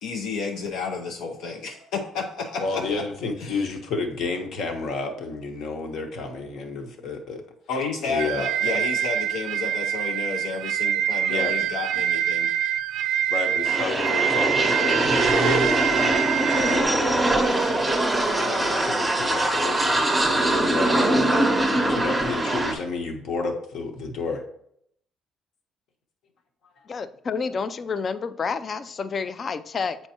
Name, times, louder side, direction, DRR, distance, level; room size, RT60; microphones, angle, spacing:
voice 1, 0.0-3.0 3.4-3.7 7.7-12.5, left 4 dB, 80° left, 2 dB, 0.6 m, -31 dB
voice 2, 2.6-7.4 8.1-8.8 11.3-11.5 13.3-18.0 18.5-21.2 21.7-24.4 26.8-26.9, left 3 dB, 60° left, 4 dB, 1.0 m, -31 dB
sound 1, 8.2-16.8, right 10 dB, 70° right, 0.4 m, -25 dB
sound 2, 13.7-22.7, right 1 dB, 5° right, 0.8 m, -22 dB
voice 3, 26.9-30.0, left 5 dB, 30° left, 13 dB, 0.3 m, -29 dB
8.1 x 4.4 x 2.8 m, 0.71 s
cardioid pair, 155°, 0 cm